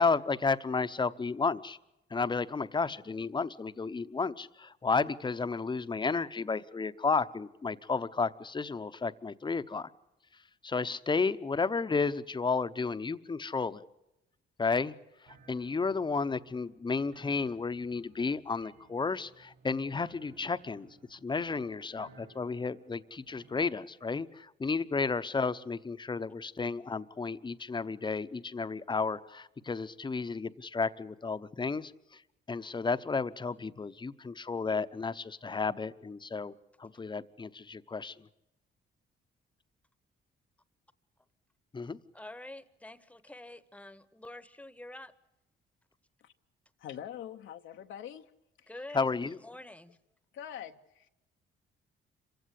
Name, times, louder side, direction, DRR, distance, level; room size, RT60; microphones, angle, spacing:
voice 1, 0.0-1.8 2.1-9.9 10.6-13.8 14.6-14.9 15.5-32.2 32.5-36.5 36.8-38.3 41.7-42.0 48.9-49.4, left 4 dB, 25° left, 0.9 m, -32 dB
sound 1, 15.2-23.6, right 4 dB, 70° right, 5.2 m, -60 dB
voice 2, 42.1-45.1 48.7-49.1 49.4-50.0, left 1 dB, 5° left, 1.1 m, -47 dB
voice 3, 46.8-48.3 48.6-48.8 50.3-51.1, left 10 dB, 75° left, 0.9 m, -44 dB
26.0 x 16.0 x 8.3 m
cardioid pair, 90°, 20 cm